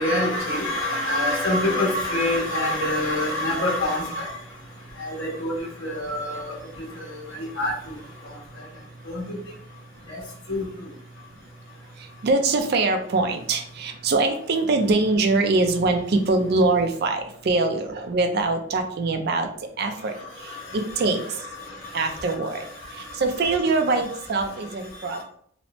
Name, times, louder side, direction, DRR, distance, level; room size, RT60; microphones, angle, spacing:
voice 1, 0.0-4.4 5.0-7.9 8.2-8.7 9.0-9.4 10.1-10.2 10.5-10.7 20.4-23.5 25.0-25.2, left 1 dB, 85° left, -4 dB, 1.0 m, -27 dB
voice 2, 11.9-21.4 21.9-25.2, right 3 dB, 55° right, 6 dB, 0.4 m, -23 dB
3.0 x 2.0 x 2.8 m, 0.63 s
head